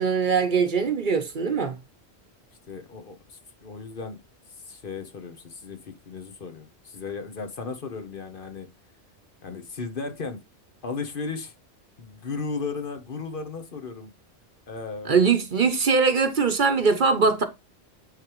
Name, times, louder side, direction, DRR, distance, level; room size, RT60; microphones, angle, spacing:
voice 1, 0.0-1.7 15.1-17.4, right 5 dB, 50° right, 0.9 m, -21 dB
voice 2, 2.7-4.2 4.7-8.7 9.4-10.4 10.8-11.5 12.0-14.1 14.7-15.2, left 4 dB, 55° left, 1.1 m, -35 dB
9.6 x 3.4 x 3.0 m
omnidirectional pair, 1.1 m